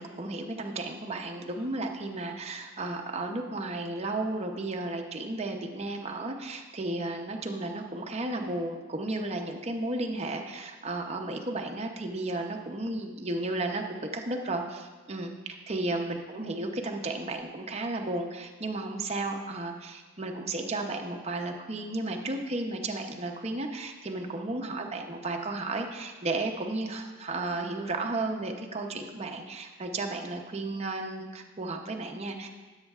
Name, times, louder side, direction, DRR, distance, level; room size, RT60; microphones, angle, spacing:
voice 1, 0.0-32.5, right 2 dB, 30° right, 2 dB, 0.7 m, -33 dB
16.0 x 8.0 x 2.4 m, 1.3 s
head